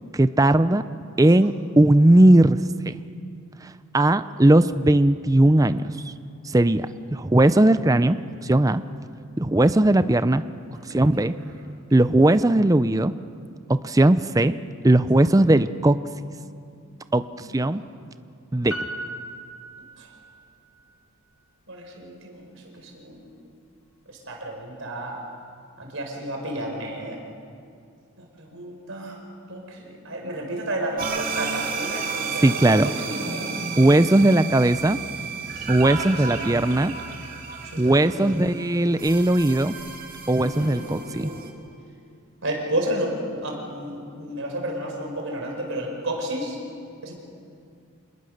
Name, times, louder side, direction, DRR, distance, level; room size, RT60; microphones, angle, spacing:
voice 1, 0.1-0.8 1.2-2.6 2.9-3.0 3.6-5.8 6.4-8.2 8.4-8.8 9.4-10.4 10.9-11.3 11.9-13.1 13.7-14.5 14.8-16.0 17.1-17.2 17.5-17.8 18.5-18.8 32.4-32.9 33.8-35.0 35.7-36.9 37.8-39.7 40.3-41.3, right 1 dB, 15° right, 13 dB, 0.5 m, -18 dB
voice 2, 10.8-11.3 15.1-15.2 17.4-17.5 20.0-20.1 21.7-22.5 22.7-23.2 24.1-25.2 25.8-27.2 28.2-29.2 29.5-32.7 33.0-33.5 36.2-36.5 37.7-38.5 40.3-40.8 42.4-46.6 47.0-47.1, right 1 dB, 60° right, 1 dB, 5.1 m, -32 dB
Piano, 18.7-20.5 20.8-20.9, right 1 dB, 65° left, 1.7 m, -36 dB
sound 1, 31.0-41.5, right 5 dB, 40° right, 2.9 m, -32 dB
27.0 x 20.5 x 6.6 m, 2.3 s
head